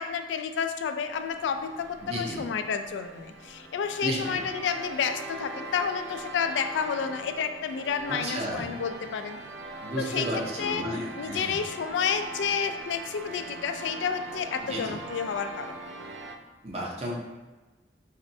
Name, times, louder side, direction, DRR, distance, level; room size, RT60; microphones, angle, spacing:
voice 1, 0.0-9.4 10.0-10.9 11.2-15.8, left 6 dB, 90° left, 8 dB, 0.3 m, -30 dB
sound 1, 1.1-16.4, right 2 dB, 70° right, 0.4 m, -42 dB
voice 2, 2.0-2.4 4.0-4.4 8.1-8.7 9.8-11.6 14.6-15.0 16.6-17.1, right 1 dB, 35° right, -2 dB, 0.8 m, -33 dB
4.2 x 3.1 x 2.7 m, 1.2 s
head